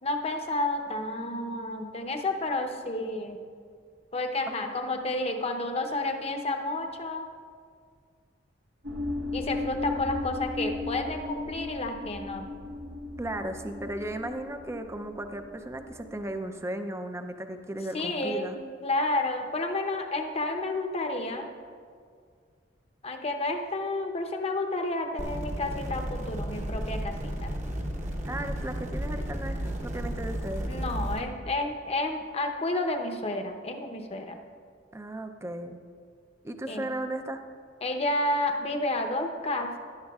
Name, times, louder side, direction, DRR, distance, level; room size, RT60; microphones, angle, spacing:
voice 1, 0.0-3.4 4.1-7.3 9.3-12.5 17.9-18.5 18.8-21.4 23.0-27.5 30.7-34.4 36.7-36.9 37.8-39.8, left 2 dB, 35° left, 4 dB, 0.8 m, -30 dB
sound 1, 8.8-16.4, left 2 dB, 80° right, 1.1 m, -37 dB
voice 2, 13.2-18.6 28.3-30.7 34.9-35.8 36.4-37.4, right 1 dB, 15° right, 7 dB, 0.5 m, -35 dB
sound 2, 25.2-31.2, equal, 40° right, 1.0 m, -33 dB
16.0 x 11.5 x 2.4 m, 2.1 s
head